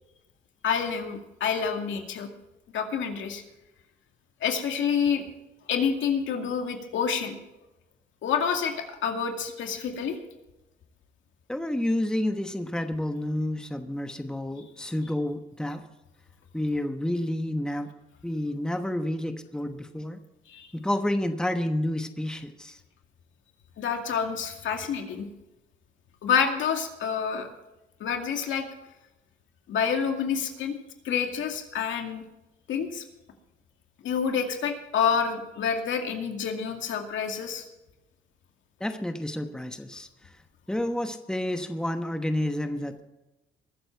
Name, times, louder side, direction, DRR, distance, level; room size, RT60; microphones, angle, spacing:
voice 1, 0.6-2.3 2.7-3.4 4.4-5.2 5.7-7.4 8.2-10.2 20.5-20.7 23.8-25.3 26.2-27.5 28.0-28.7 29.7-30.8 31.0-32.2 32.7-33.0 34.0-37.6, left 7 dB, 75° left, 4 dB, 2.3 m, -28 dB
voice 2, 11.5-15.8 16.5-17.9 18.2-20.2 20.7-22.8 38.8-40.1 40.7-43.0, left 1 dB, 5° left, 7 dB, 1.1 m, -29 dB
22.0 x 7.7 x 4.6 m, 0.99 s
cardioid pair, 90°, 20 cm